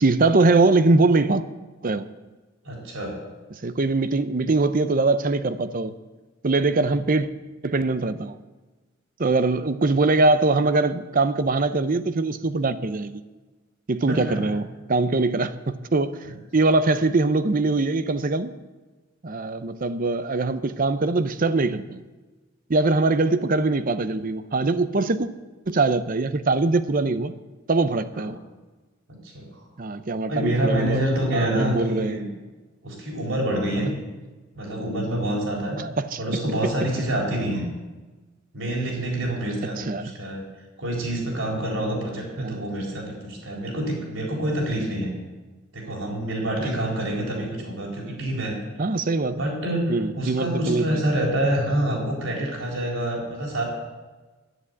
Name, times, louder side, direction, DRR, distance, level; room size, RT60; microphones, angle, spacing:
voice 1, 0.0-1.4 1.8-2.1 3.6-5.9 6.4-7.3 7.6-8.4 9.2-13.2 13.9-16.2 16.5-18.5 19.2-22.0 22.7-25.3 25.7-27.3 27.7-28.4 29.8-31.0 31.3-32.2 33.8-33.9 35.8-36.2 39.8-40.1 42.4-42.6 46.6-46.7 48.8-49.4 49.9-51.0, right 3 dB, 45° right, 12 dB, 0.6 m, -22 dB
voice 2, 2.6-3.1 14.1-14.4 16.2-16.4 28.1-28.3 29.3-29.6 30.3-32.3 32.8-33.9 34.5-35.8 36.2-37.6 38.5-40.4 40.8-45.1 45.7-48.5 49.4-53.6, right 1 dB, 75° right, -1 dB, 4.2 m, -27 dB
11.0 x 10.0 x 8.4 m, 1.2 s
head